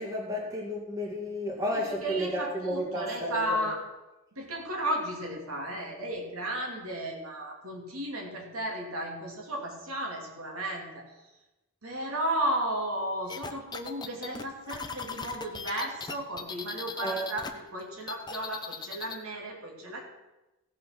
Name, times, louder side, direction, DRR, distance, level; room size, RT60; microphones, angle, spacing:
voice 1, 0.0-3.7 17.0-17.3, equal, 15° right, -3 dB, 2.1 m, -32 dB
voice 2, 1.8-3.8 4.3-11.0 11.8-20.0, right 1 dB, 85° right, 0 dB, 2.8 m, -34 dB
sound 1, 13.3-17.5 17.8-19.2, left 5 dB, 20° left, 0.7 m, -38 dB
16.5 x 5.5 x 6.0 m, 1.0 s
head